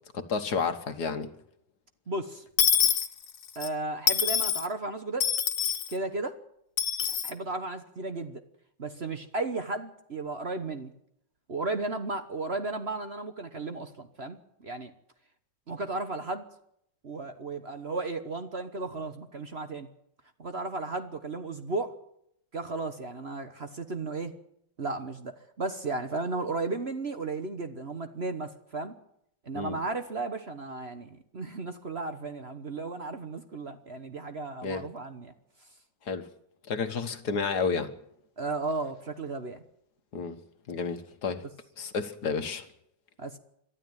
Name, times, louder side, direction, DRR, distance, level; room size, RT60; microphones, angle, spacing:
voice 1, 0.1-1.3 29.5-29.8 34.6-34.8 36.1-36.3 36.7-37.9 40.1-40.4 40.7-41.5 41.8-42.7, left 5 dB, 60° left, 1.8 m, -31 dB
voice 2, 2.1-2.4 3.5-5.3 5.9-6.4 7.2-8.4 8.8-10.9 11.5-14.9 15.7-16.4 17.0-19.9 20.4-22.0 22.5-24.3 24.8-28.9 29.4-35.3 38.4-39.6 43.2-43.4, right 3 dB, 40° right, 1.3 m, -34 dB
Dishes pots and pans / Coin (dropping), 2.6-3.7 4.1-4.7 5.2-5.9 6.8-7.3, left 8 dB, 85° left, 2.0 m, -25 dB
22.5 x 13.0 x 9.1 m
omnidirectional pair, 2.0 m